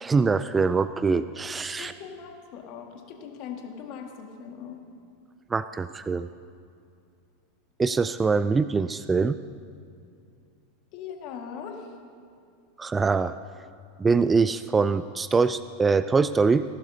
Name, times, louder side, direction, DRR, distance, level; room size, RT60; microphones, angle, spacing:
voice 1, 0.0-1.9 5.5-6.3 7.8-9.4 12.8-13.3 14.0-16.6, right 4 dB, 20° right, 14 dB, 0.3 m, -23 dB
voice 2, 1.8-4.8 10.9-11.9, left 7 dB, 50° left, 2 dB, 1.8 m, -40 dB
18.5 x 11.5 x 2.8 m, 2.4 s
hypercardioid pair, 90°, 0 cm